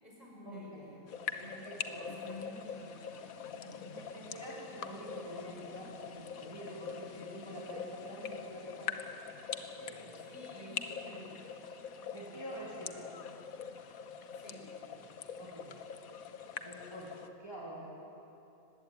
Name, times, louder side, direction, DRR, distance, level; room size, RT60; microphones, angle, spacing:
voice 1, 0.0-4.0 10.3-11.4 14.3-14.7, equal, 25° left, -3 dB, 5.2 m, -51 dB
sound 1, 1.1-17.3, left 7 dB, 80° left, 1.4 m, -44 dB
voice 2, 1.6-2.1 3.9-9.0 9.8-11.2 12.1-13.1 14.9-15.0 15.4-15.7 16.6-17.1 17.4-17.9, right 1 dB, 15° right, -5 dB, 2.7 m, -47 dB
20.5 x 16.0 x 8.9 m, 2.9 s
omnidirectional pair, 1.5 m